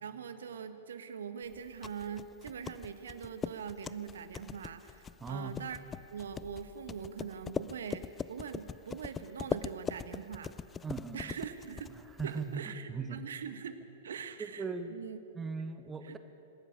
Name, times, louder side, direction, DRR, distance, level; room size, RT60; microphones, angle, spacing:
voice 1, 0.0-5.8 6.1-10.5 11.1-11.9 12.2-15.2 16.0-16.1, right 7 dB, 60° right, 10 dB, 1.2 m, -42 dB
sound 1, 1.5-12.6, left 6 dB, 15° left, 0.4 m, -42 dB
voice 2, 5.2-5.5 10.8-11.3 11.9-13.2 14.4-15.0 15.3-16.2, right 4 dB, 15° right, 9 dB, 1.1 m, -39 dB
26.0 x 13.0 x 8.8 m, 2.8 s
figure-of-eight pair, 105°, 0 cm